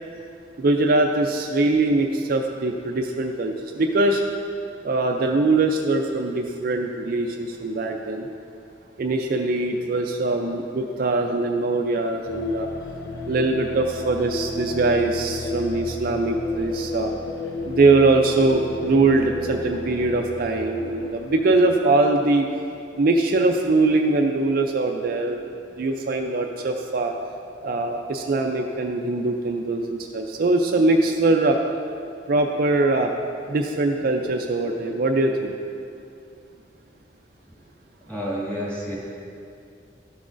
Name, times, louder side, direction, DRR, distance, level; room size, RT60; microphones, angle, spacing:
voice 1, 0.6-4.2 4.8-8.3 9.0-12.7 13.3-17.1 17.6-22.5 23.0-25.5 25.8-27.1 27.6-31.6 32.3-33.1 33.5-35.5, right 2 dB, 50° right, 3 dB, 0.4 m, -22 dB
sound 1, 12.3-21.6, left 2 dB, 80° left, 0.6 m, -32 dB
voice 2, 38.0-38.9, equal, 10° left, -7 dB, 1.9 m, -29 dB
12.5 x 6.1 x 2.5 m, 2.5 s
head